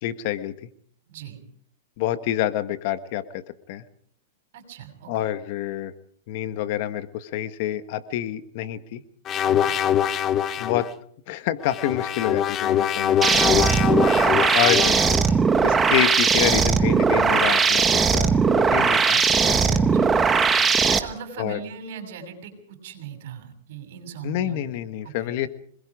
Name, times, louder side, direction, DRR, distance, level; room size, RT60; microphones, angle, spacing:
voice 1, 0.0-0.7 2.0-3.4 3.7-3.8 5.1-5.9 6.3-9.0 10.6-10.9 11.3-13.6 14.5-15.0 15.6-17.8 18.1-19.9 21.4-21.6 24.2-25.5, left 12 dB, 50° left, 11 dB, 1.5 m, -27 dB
voice 2, 1.1-1.4 4.5-5.3 9.5-9.8 13.9-14.3 19.7-20.1 20.7-24.8 25.0-25.3, right 7 dB, 60° right, 6 dB, 6.9 m, -39 dB
sound 1, 9.3-10.9 11.6-15.3, left 10 dB, 25° left, 0.8 m, -23 dB
sound 2, 13.2-21.0, right 5 dB, 15° right, 1.4 m, -19 dB
26.0 x 21.5 x 5.0 m, 0.62 s
hypercardioid pair, 140°, 0 cm